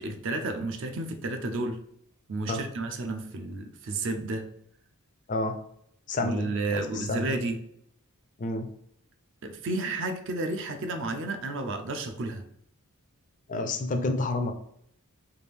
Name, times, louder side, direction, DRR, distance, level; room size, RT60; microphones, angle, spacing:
voice 1, 0.0-1.8 2.3-4.5 6.2-7.6 9.4-12.4, right 2 dB, 55° right, 6 dB, 0.4 m, -32 dB
voice 2, 6.1-7.3 8.4-8.7 13.5-14.5, left 2 dB, 35° left, 7 dB, 0.3 m, -29 dB
3.3 x 2.5 x 3.3 m, 0.70 s
head